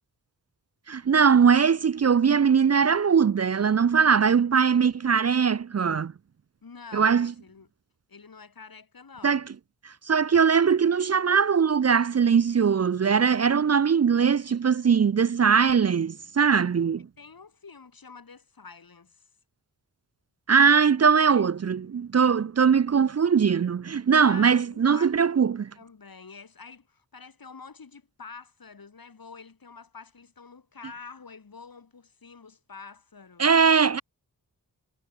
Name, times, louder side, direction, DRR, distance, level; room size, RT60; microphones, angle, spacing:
voice 1, 0.9-6.1 6.9-7.3 9.2-9.4 9.8-17.1 20.5-25.7 33.4-34.0, right 6 dB, 40° right, 0.5 m, -21 dB
voice 2, 6.6-7.7 8.1-9.6 17.0-19.3 20.6-20.8 21.1-21.5 21.8-22.0 24.2-25.5 25.8-33.5, left 5 dB, 65° left, 3.5 m, -47 dB
wide cardioid pair, 80°, 38 cm